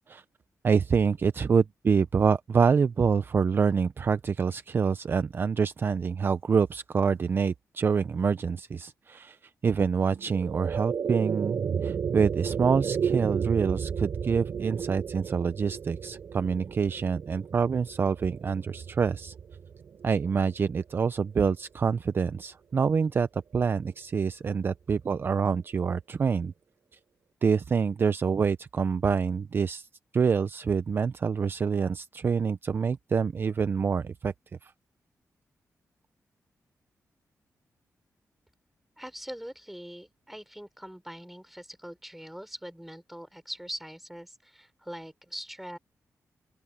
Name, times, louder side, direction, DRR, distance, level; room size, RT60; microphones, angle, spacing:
voice 1, 0.6-9.4 9.6-19.3 20.0-26.5 27.4-29.9 30.1-34.3 34.6-34.7, right 6 dB, 40° right, 0.4 m, -26 dB
sound 1, 10.0-20.5, right 7 dB, 65° right, 3.1 m, -33 dB
voice 2, 39.0-45.8, equal, 5° right, 5.6 m, -42 dB
open air
wide cardioid pair, 155°, 6 cm